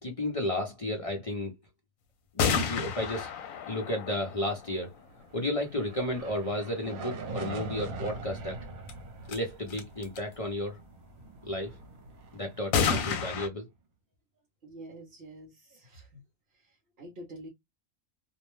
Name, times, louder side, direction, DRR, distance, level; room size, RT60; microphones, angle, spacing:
voice 1, 0.0-1.5 2.3-3.3 3.7-4.9 5.3-8.6 9.3-10.8 11.4-11.8 12.3-13.7, left 1 dB, 45° left, 0.4 m, -33 dB
sound 1, 2.4-5.2 8.9-9.0 9.3-9.4 9.7-10.2 12.7-13.5, left 6 dB, 75° left, 1.0 m, -30 dB
sound 2, 5.1-13.5, right 3 dB, 70° right, 1.1 m, -43 dB
voice 2, 14.6-16.2 16.6-17.5, right 1 dB, 50° right, 0.8 m, -47 dB
2.6 x 2.1 x 3.0 m
omnidirectional pair, 1.5 m